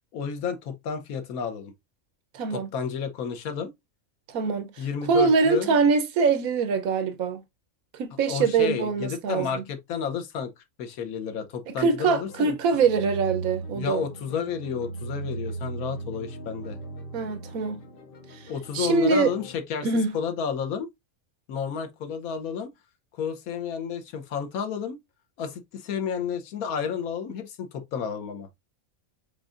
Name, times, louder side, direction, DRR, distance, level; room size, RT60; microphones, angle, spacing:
voice 1, 0.1-1.7 2.5-3.7 4.8-5.8 8.3-10.5 10.8-12.5 13.7-16.8 18.5-19.9 20.1-20.9 21.5-22.7 23.1-25.0 25.4-28.5, left 7 dB, 85° left, 1.3 m, -31 dB
voice 2, 2.3-2.7 4.3-7.4 7.9-9.6 11.7-14.0 17.1-17.8 18.7-19.3 19.8-20.2, right 5 dB, 80° right, 1.2 m, -24 dB
sound 1, 12.2-19.6, right 2 dB, 45° left, 1.0 m, -38 dB
5.2 x 3.8 x 2.4 m
omnidirectional pair, 1.5 m